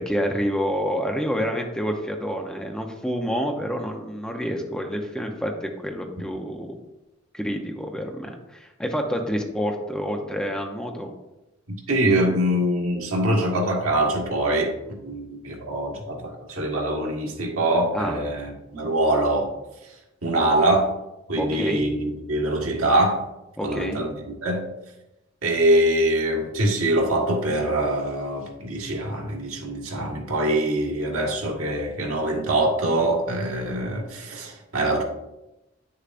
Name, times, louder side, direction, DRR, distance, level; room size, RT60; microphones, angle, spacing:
voice 1, 0.0-6.7 7.3-11.1 17.9-18.2 21.4-21.8 23.6-24.0, equal, 5° left, 2 dB, 0.6 m, -28 dB
voice 2, 11.9-14.7 15.0-19.5 20.2-20.9 21.3-23.2 23.6-24.1 24.4-24.6 25.4-35.0, right 1 dB, 85° right, 0 dB, 1.7 m, -23 dB
9.4 x 6.7 x 2.5 m, 0.95 s
head